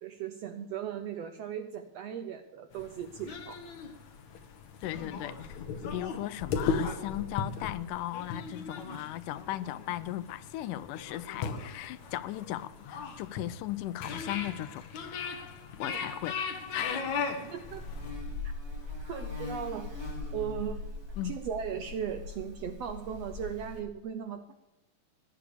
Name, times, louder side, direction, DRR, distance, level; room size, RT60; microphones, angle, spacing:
voice 1, 0.0-3.6 15.8-16.0 17.4-17.9 19.1-19.9 20.3-20.8 21.2-24.6, right 8 dB, 75° right, 1.5 m, -37 dB
sound 1, 2.7-18.1, left 5 dB, 65° left, 2.7 m, -37 dB
voice 2, 4.8-5.6 5.9-15.3 15.8-16.4 16.7-17.0 21.2-21.4, left 14 dB, 80° left, 2.1 m, -37 dB
Buzz, 17.6-23.8, left 3 dB, 10° right, 2.8 m, -40 dB
16.5 x 9.4 x 6.9 m
omnidirectional pair, 3.7 m